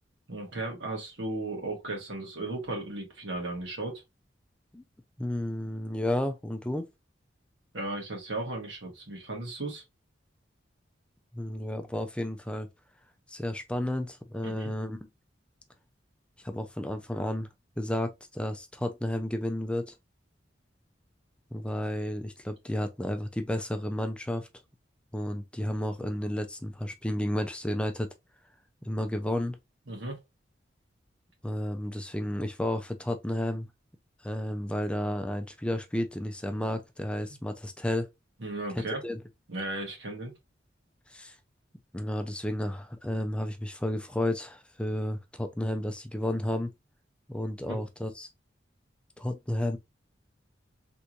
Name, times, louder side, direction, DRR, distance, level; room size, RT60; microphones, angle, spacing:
voice 1, 0.3-4.0 7.7-9.8 14.4-14.7 29.9-30.2 38.4-39.0 39.5-40.3 47.6-47.8, right 2 dB, 90° right, 1.6 m, -35 dB
voice 2, 5.2-6.9 11.3-12.7 13.3-15.0 16.4-17.5 17.8-19.9 21.5-24.5 25.1-28.1 28.9-29.6 31.4-33.7 34.2-38.1 39.0-39.2 41.1-41.3 41.9-46.7 47.3-48.3 49.2-49.8, left 1 dB, 5° left, 0.4 m, -32 dB
3.4 x 3.0 x 2.5 m
head